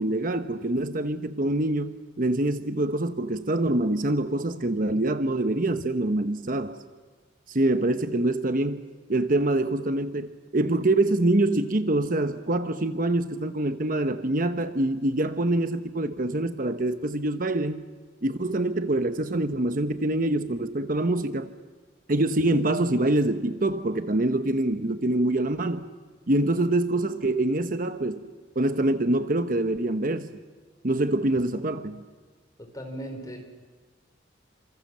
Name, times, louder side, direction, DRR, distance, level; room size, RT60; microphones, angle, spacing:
voice 1, 0.0-6.8 7.5-8.8 9.1-17.8 18.2-21.5 22.1-25.8 26.3-28.2 28.5-30.3 30.8-32.0, right 1 dB, 45° right, 10 dB, 1.0 m, -25 dB
voice 2, 32.6-33.4, right 1 dB, 20° left, 4 dB, 4.4 m, -38 dB
29.0 x 27.0 x 7.5 m, 1.4 s
head